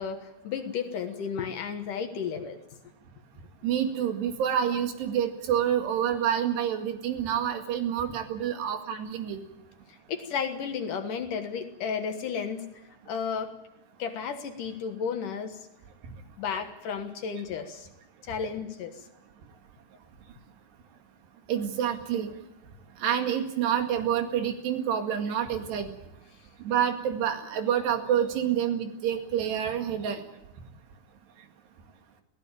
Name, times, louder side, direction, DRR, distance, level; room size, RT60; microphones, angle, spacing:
voice 1, 0.0-2.6 10.1-12.7 13.1-13.5 14.0-15.6 16.4-17.9 18.2-19.0, left 6 dB, 60° left, 7 dB, 2.6 m, -33 dB
voice 2, 3.6-9.4 21.5-22.3 23.0-25.9 26.6-30.2, right 9 dB, 85° right, 5 dB, 4.2 m, -28 dB
21.5 x 17.0 x 9.0 m, 0.89 s
omnidirectional pair, 4.7 m